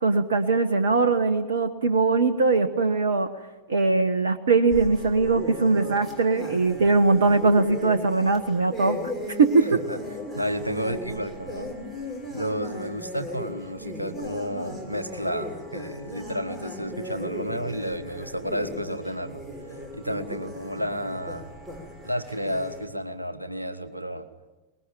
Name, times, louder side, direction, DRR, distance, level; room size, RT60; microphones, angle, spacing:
voice 1, 0.0-3.3 3.7-9.0 9.4-9.8, right 3 dB, 65° right, 11 dB, 1.2 m, -21 dB
sound 1, 4.7-22.9, left 1 dB, 10° right, 6.4 m, -37 dB
voice 2, 10.3-11.7 12.3-19.4 19.9-21.5 22.0-24.3, equal, 85° right, 10 dB, 1.5 m, -31 dB
23.5 x 20.5 x 9.2 m, 1.1 s
figure-of-eight pair, 90°, 0 cm